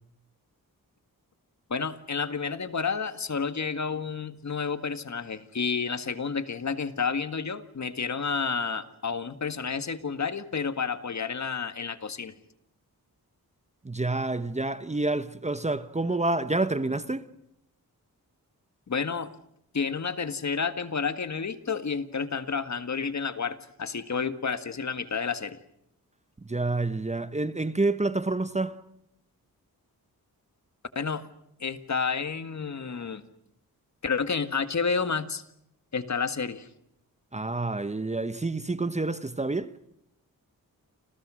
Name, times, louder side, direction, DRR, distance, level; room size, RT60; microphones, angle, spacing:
voice 1, 1.7-12.3 18.9-19.4 19.7-25.6 31.0-31.3 31.6-33.2 34.0-35.4 35.9-36.7, left 5 dB, 50° left, 1.9 m, -30 dB
voice 2, 13.8-17.3 26.4-28.8 37.3-39.7, right 2 dB, 20° right, 1.1 m, -28 dB
29.5 x 27.5 x 6.4 m
wide cardioid pair, 105°, 36 cm